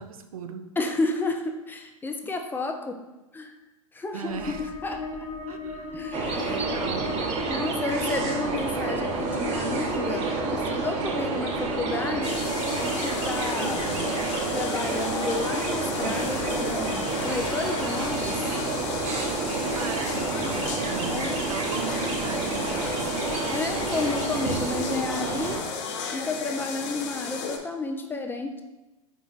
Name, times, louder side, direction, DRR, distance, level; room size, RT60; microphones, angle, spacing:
voice 1, 0.0-0.7 4.1-4.7 5.5-7.1 13.6-14.2 19.7-23.4, right 6 dB, 85° right, 7 dB, 0.5 m, -38 dB
voice 2, 0.8-3.0 3.3-3.5 3.9-4.5 4.8-5.3 5.9-6.6 7.5-12.4 12.8-13.9 14.5-18.4 21.1-21.4 23.5-25.6 26.1-28.6, left 3 dB, 10° left, 4 dB, 0.4 m, -31 dB
sound 1, 4.3-23.7, left 4 dB, 35° left, 1.2 m, -39 dB
sound 2, 6.1-25.6, right 4 dB, 40° right, 0.8 m, -29 dB
sound 3, 12.2-27.6, left 5 dB, 60° left, 0.7 m, -34 dB
4.5 x 4.2 x 2.4 m, 1.0 s
hypercardioid pair, 105°, 18 cm